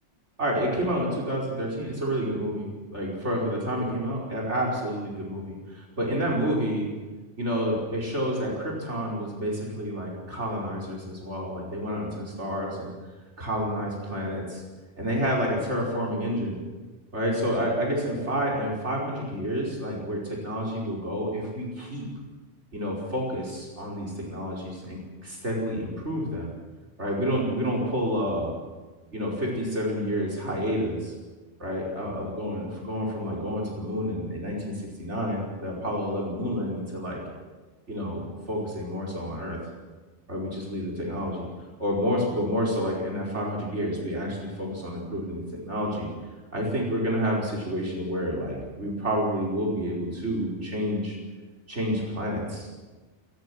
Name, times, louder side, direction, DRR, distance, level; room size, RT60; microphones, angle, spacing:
voice 1, 0.4-6.9 7.4-12.9 13.4-14.6 15.0-16.6 17.1-22.1 22.7-26.5 27.0-28.5 29.1-31.1 31.6-37.2 37.9-39.6 40.3-41.5 41.8-46.1 46.5-51.2 51.7-52.7, equal, 70° right, -2 dB, 5.5 m, -29 dB
27.0 x 20.5 x 6.4 m, 1.3 s
omnidirectional pair, 1.2 m